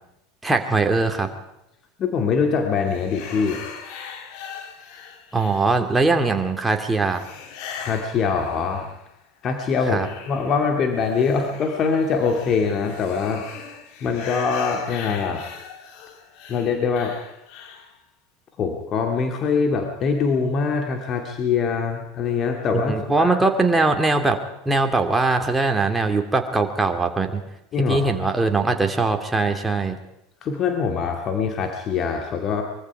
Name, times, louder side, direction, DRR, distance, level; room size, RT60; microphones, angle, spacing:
voice 1, 0.4-1.3 5.3-7.2 9.9-10.1 22.7-24.4 24.6-27.4 27.9-30.0, right 3 dB, 10° right, 4 dB, 2.8 m, -21 dB
voice 2, 2.0-3.6 7.8-8.9 9.4-13.5 14.0-15.5 16.5-17.2 18.6-23.5 27.7-28.1 30.4-32.6, left 5 dB, 40° left, 3 dB, 2.5 m, -23 dB
sound 1, 2.9-6.0 7.1-9.1 9.5-18.0, left 6 dB, 55° left, 3.0 m, -39 dB
24.0 x 22.5 x 4.8 m, 0.83 s
figure-of-eight pair, 80°, 0 cm